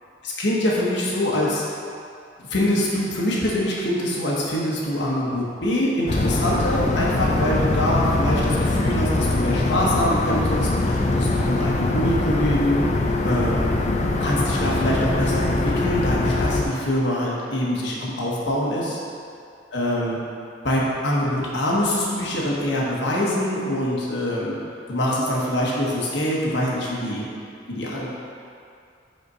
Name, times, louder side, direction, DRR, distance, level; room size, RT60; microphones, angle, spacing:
voice 1, 0.2-1.6 2.5-12.8 13.2-13.7 14.2-19.0 19.7-20.2 20.6-24.5 24.9-27.2 27.7-28.1, left 1 dB, 70° left, -5 dB, 1.2 m, -24 dB
sound 1, 6.1-16.7, left 2 dB, 40° left, 0.5 m, -22 dB
5.4 x 4.3 x 5.4 m, 2.4 s
head